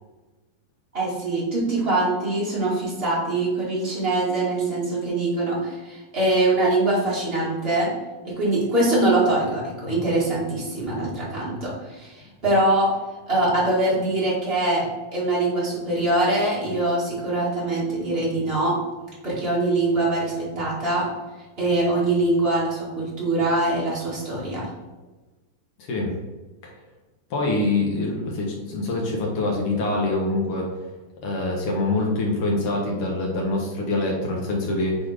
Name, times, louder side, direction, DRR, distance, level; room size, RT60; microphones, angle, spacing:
voice 1, 0.9-7.9 8.2-12.9 13.3-18.8 19.2-21.1 21.6-24.7, right 2 dB, 25° right, -6 dB, 1.3 m, -23 dB
voice 2, 25.8-26.1 26.6-26.7 27.3-30.7 31.2-35.0, left 2 dB, 70° left, -1 dB, 1.3 m, -25 dB
5.6 x 4.4 x 4.9 m, 1.2 s
omnidirectional pair, 4.1 m